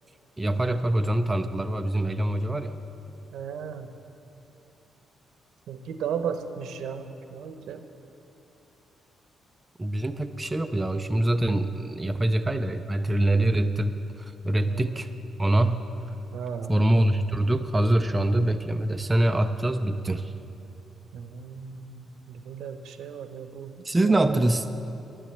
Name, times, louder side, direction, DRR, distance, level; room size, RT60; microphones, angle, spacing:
voice 1, 0.4-2.7 9.8-13.9 14.2-15.1 15.4-15.8 16.7-20.3 23.8-24.7, right 1 dB, 10° right, 7 dB, 0.4 m, -24 dB
voice 2, 3.3-3.9 5.7-7.8 14.7-15.1 16.3-16.7 21.1-23.7, right 7 dB, 80° right, 8 dB, 0.8 m, -35 dB
11.0 x 10.0 x 7.9 m, 2.8 s
cardioid pair, 155°, 0 cm